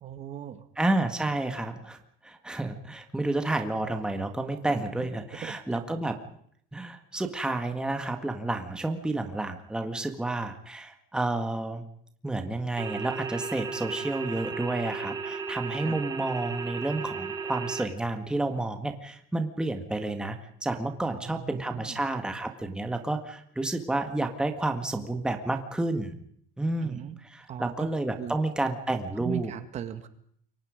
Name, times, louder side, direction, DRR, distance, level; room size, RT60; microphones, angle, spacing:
voice 1, 0.0-0.6 5.3-5.5 15.8-16.0 21.1-22.0 26.8-27.2 27.5-27.9 28.2-28.4 29.2-30.1, right 9 dB, 40° right, 9 dB, 2.0 m, -38 dB
voice 2, 0.8-2.0 2.2-6.2 6.7-11.8 12.2-20.4 20.6-26.1 26.6-29.5, right 2 dB, 5° right, 5 dB, 1.8 m, -30 dB
sound 1, 12.8-17.8, right 5 dB, 20° right, 5.0 m, -35 dB
28.5 x 24.0 x 5.2 m, 0.65 s
cardioid pair, 160°, 19 cm